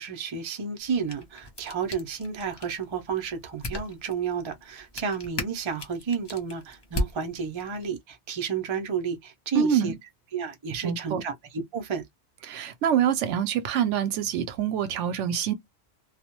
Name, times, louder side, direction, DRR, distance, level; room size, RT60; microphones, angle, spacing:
voice 1, 0.0-9.9 10.3-12.0, right 6 dB, 35° right, 0.5 m, -31 dB
sound 1, 0.8-7.9, left 1 dB, 30° left, 0.5 m, -38 dB
voice 2, 9.5-10.0 10.8-11.2 12.5-15.5, right 9 dB, 85° right, 0.9 m, -25 dB
2.3 x 2.0 x 2.9 m
omnidirectional pair, 1.2 m